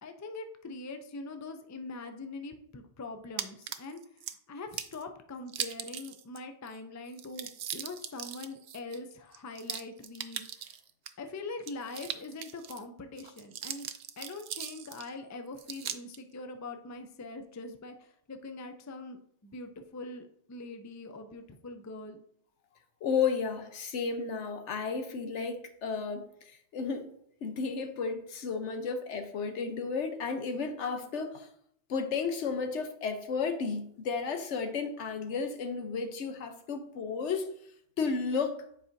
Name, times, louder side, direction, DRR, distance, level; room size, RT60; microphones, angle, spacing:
voice 1, 0.0-4.0 4.5-10.8 11.2-13.9 14.2-22.2, left 3 dB, 25° left, 0.3 m, -43 dB
sound 1, 3.4-4.3 4.7-5.0 5.5-6.4 6.7-6.8 7.1-11.1 11.6-12.8 13.2-15.1 15.6-16.2, right 9 dB, 75° right, 0.8 m, -39 dB
voice 2, 23.0-27.1 27.4-31.5 31.9-37.5 38.0-38.6, left 5 dB, 85° left, 1.1 m, -33 dB
9.7 x 4.8 x 2.7 m
omnidirectional pair, 1.2 m